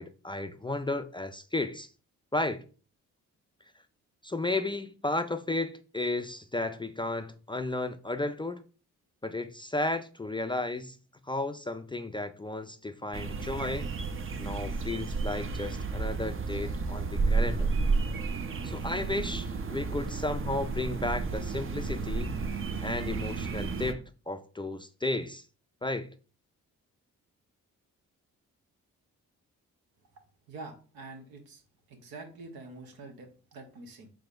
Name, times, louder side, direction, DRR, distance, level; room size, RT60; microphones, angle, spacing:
voice 1, 0.0-1.9 2.3-2.6 4.2-8.6 9.2-11.0 11.3-13.9 14.4-17.7 18.6-22.4 22.8-25.4 25.8-26.1, left 2 dB, 15° left, 0.3 m, -33 dB
sound 1, 13.1-23.9, right 4 dB, 35° right, 0.6 m, -32 dB
voice 2, 30.5-31.6 31.9-34.1, right 3 dB, 80° right, 1.0 m, -46 dB
4.9 x 3.5 x 2.5 m
supercardioid pair, 50°, 36 cm